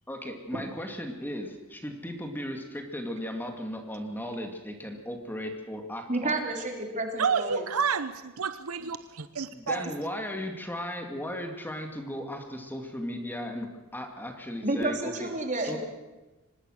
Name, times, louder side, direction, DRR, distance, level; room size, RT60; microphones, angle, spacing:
voice 1, 0.1-6.4 9.5-15.3 15.6-15.8, left 1 dB, 10° left, 4 dB, 2.2 m, -36 dB
voice 2, 6.1-7.6 14.6-15.8, right 2 dB, 35° right, 3 dB, 3.7 m, -30 dB
voice 3, 7.2-9.9, right 5 dB, 75° right, 12 dB, 0.9 m, -29 dB
25.0 x 20.0 x 6.4 m, 1.1 s
head